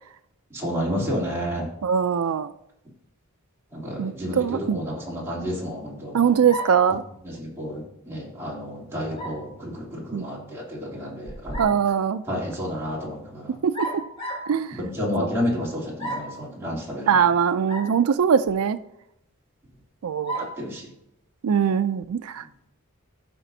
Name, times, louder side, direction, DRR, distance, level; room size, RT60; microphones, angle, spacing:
voice 1, 0.5-1.7 3.7-4.4 4.7-6.3 7.4-11.7 12.3-13.5 14.8-17.1 20.6-20.8, equal, 10° right, -6 dB, 3.1 m, -30 dB
voice 2, 1.8-2.5 4.0-4.8 6.1-7.0 10.1-10.3 11.6-12.2 13.6-14.0 14.5-14.8 15.2-15.3 17.1-18.8 20.0-20.4 21.4-22.4, right 7 dB, 85° right, 12 dB, 0.4 m, -22 dB
sound 1, 6.5-6.9 9.2-9.5 11.3-11.9 13.7-14.5 16.0-16.4 17.7-17.9 18.5-18.6 20.3-20.6, right 1 dB, 25° left, 1.6 m, -32 dB
16.0 x 6.0 x 2.7 m, 0.82 s
head